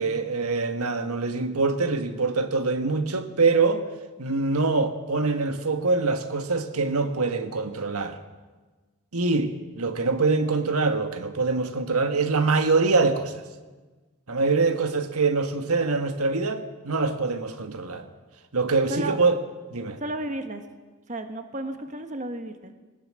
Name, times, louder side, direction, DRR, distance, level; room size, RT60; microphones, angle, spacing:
voice 1, 0.0-3.8 4.2-8.2 9.1-13.3 14.3-18.1 18.5-19.3 19.7-20.0, right 3 dB, 85° right, 8 dB, 1.6 m, -24 dB
voice 2, 20.0-20.6 21.1-22.7, right 1 dB, 35° right, 7 dB, 1.4 m, -32 dB
20.0 x 19.0 x 7.7 m, 1.3 s
head